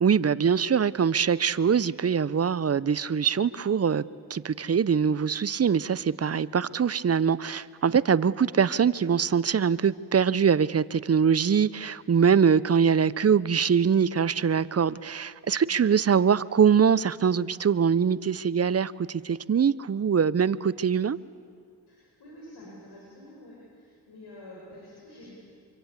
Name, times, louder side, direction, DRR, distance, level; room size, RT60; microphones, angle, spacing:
voice 1, 0.0-4.0 4.3-21.2, right 7 dB, 35° right, 18 dB, 0.8 m, -23 dB
voice 2, 21.9-25.3, left 1 dB, 70° left, -4 dB, 7.5 m, -48 dB
26.5 x 23.0 x 8.3 m, 2.1 s
supercardioid pair, 55°, 42 cm